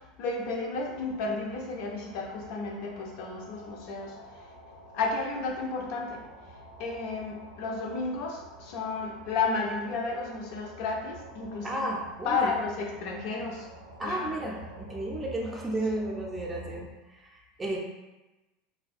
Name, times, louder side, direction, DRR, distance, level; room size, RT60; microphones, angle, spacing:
voice 1, 0.2-4.2 4.9-6.3 6.8-11.9 12.3-13.7 14.0-14.3, left 4 dB, 55° left, 0 dB, 0.4 m, -32 dB
sound 1, 0.7-16.8, right 1 dB, 90° right, 0.4 m, -49 dB
voice 2, 11.6-12.6 14.0-17.8, right 1 dB, 20° right, -1 dB, 0.5 m, -33 dB
2.3 x 2.2 x 2.5 m, 1.1 s
figure-of-eight pair, 80°, 0 cm